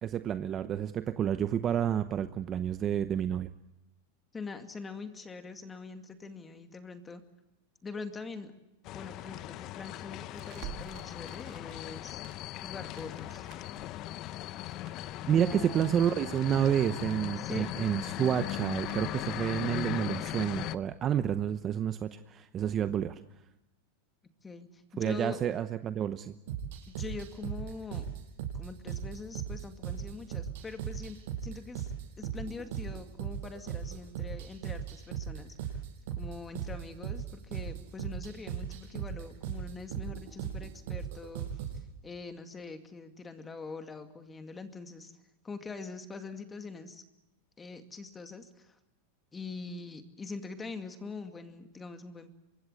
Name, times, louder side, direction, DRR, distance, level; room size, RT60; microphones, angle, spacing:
voice 1, 0.0-3.5 15.3-23.2 25.0-26.3, right 9 dB, 30° right, 11 dB, 0.9 m, -29 dB
voice 2, 4.3-7.2 7.8-8.5 8.9-12.2 12.6-13.5 15.3-15.9 17.4-17.7 24.4-25.4 26.9-28.1 28.5-35.8 36.2-41.5 42.0-45.1 45.4-47.0 47.6-48.8 49.3-52.3, left 4 dB, 15° left, 7 dB, 2.2 m, -43 dB
sound 1, 8.8-20.8, left 14 dB, 40° left, 0.8 m, -38 dB
Crackle, 10.3-19.3, right 11 dB, 50° right, 2.6 m, -52 dB
sound 2, 26.5-41.8, right 8 dB, 70° right, 6.5 m, -38 dB
25.0 x 21.5 x 7.9 m, 0.91 s
supercardioid pair, 135°, 0 cm